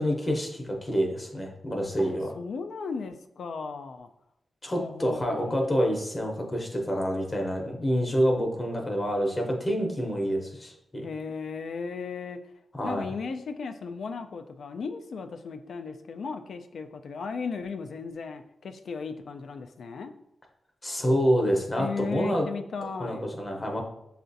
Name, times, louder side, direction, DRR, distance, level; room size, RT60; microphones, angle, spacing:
voice 1, 0.0-2.3 4.6-11.1 12.8-13.0 20.8-22.5 23.0-23.8, equal, 25° left, 1 dB, 0.7 m, -27 dB
voice 2, 2.0-4.1 4.7-5.8 11.0-12.4 12.8-20.1 21.8-23.3, left 5 dB, 80° left, 7 dB, 0.3 m, -36 dB
6.6 x 2.4 x 2.6 m, 0.81 s
wide cardioid pair, 110°, 0 cm